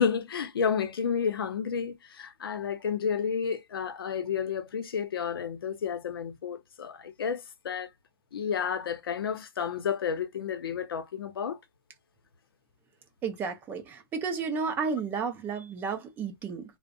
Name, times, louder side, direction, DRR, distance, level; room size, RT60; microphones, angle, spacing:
voice 1, 0.0-7.9 8.3-11.6, left 7 dB, 85° left, 0.6 m, -31 dB
voice 2, 13.2-16.6, right 5 dB, 15° right, 0.4 m, -32 dB
2.5 x 2.0 x 2.4 m
hypercardioid pair, 145°, 12 cm